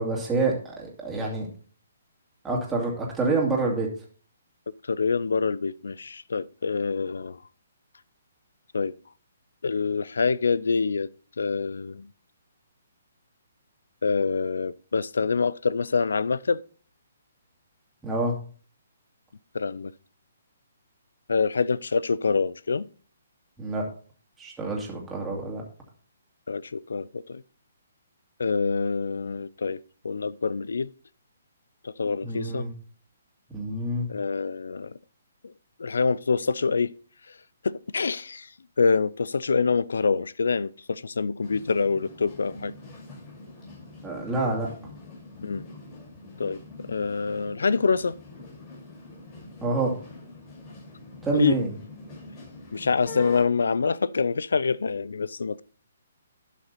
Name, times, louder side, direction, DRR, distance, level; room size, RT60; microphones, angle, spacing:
voice 1, 0.0-1.5 2.4-3.9 18.0-18.3 23.6-23.9 24.4-25.6 32.2-32.7 33.5-34.1 44.0-44.7 49.6-49.9 51.2-51.7, right 3 dB, 10° right, 2.5 m, -27 dB
voice 2, 4.8-7.4 8.7-8.9 9.6-11.1 11.4-12.1 14.0-16.6 19.5-19.9 21.3-22.9 26.5-27.4 28.4-30.9 31.8-32.7 34.1-35.0 35.4-35.5 35.8-36.9 37.3-37.4 37.6-38.5 38.8-42.7 45.4-45.6 46.4-46.6 46.9-48.2 51.3-51.6 52.7-55.6, left 5 dB, 75° left, 0.4 m, -26 dB
sound 1, 41.4-53.4, left 2 dB, 25° left, 5.6 m, -44 dB
11.5 x 5.9 x 4.0 m
figure-of-eight pair, 135°, 0 cm